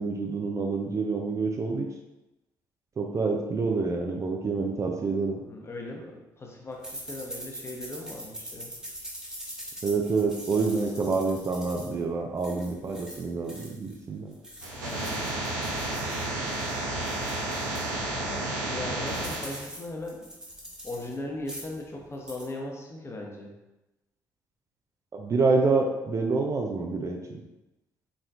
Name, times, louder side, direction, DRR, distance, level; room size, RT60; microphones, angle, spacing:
voice 1, 0.0-1.9 3.0-5.4 9.8-14.3 25.1-27.4, right 4 dB, 30° right, 2 dB, 0.5 m, -27 dB
voice 2, 5.3-8.7 14.6-15.3 18.2-20.2 20.8-23.5, left 2 dB, 25° left, 0 dB, 1.0 m, -38 dB
sound 1, 6.8-14.0 14.3-17.9 18.3-18.4 18.7-21.1 21.4-21.8 22.1-22.5, equal, 10° right, 1.2 m, -43 dB
sound 2, 14.6-19.6, right 2 dB, 75° right, 0.7 m, -31 dB
4.2 x 4.0 x 2.5 m, 0.99 s
figure-of-eight pair, 45°, 10 cm